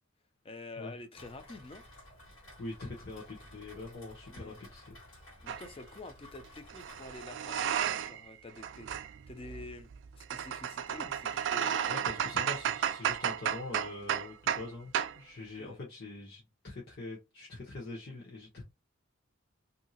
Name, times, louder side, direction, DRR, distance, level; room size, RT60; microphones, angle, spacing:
voice 1, 0.4-1.8 4.3-4.6 5.4-12.3 15.6-15.8, left 2 dB, 30° left, 0.5 m, -48 dB
Rain, 1.1-7.2, left 1 dB, 80° left, 1.6 m, -54 dB
voice 2, 2.6-5.0 11.9-18.6, left 2 dB, 55° left, 1.1 m, -43 dB
sound 1, 5.5-5.7 6.7-8.3 8.6-14.7 14.9-15.2, right 9 dB, 60° right, 0.3 m, -33 dB
2.9 x 2.8 x 2.8 m
head